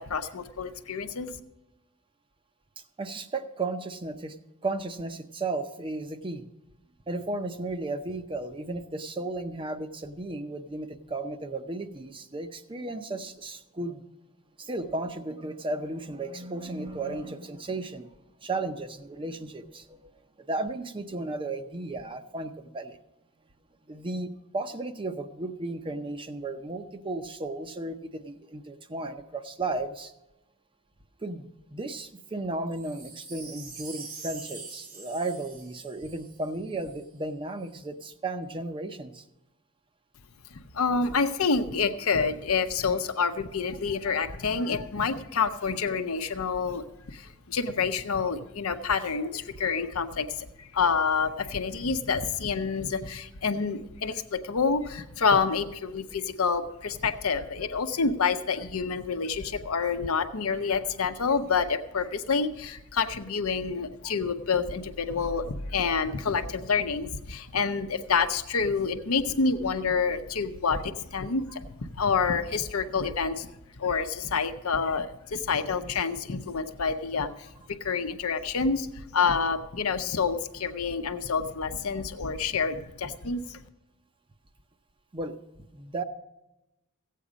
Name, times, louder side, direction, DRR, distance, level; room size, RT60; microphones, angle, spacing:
voice 1, 0.0-1.3 40.7-73.5 73.8-83.6, left 5 dB, 75° left, 8 dB, 0.8 m, -28 dB
voice 2, 3.0-4.4 4.6-6.5 7.1-14.0 14.6-18.1 18.4-20.1 20.5-23.0 23.9-30.1 31.2-39.2 85.1-85.4 85.7-86.0, right 2 dB, 25° right, 9 dB, 0.7 m, -34 dB
Wind chime, 32.7-37.1 37.6-37.7, right 4 dB, 90° right, 3.6 m, -44 dB
15.0 x 8.4 x 5.1 m, 0.96 s
head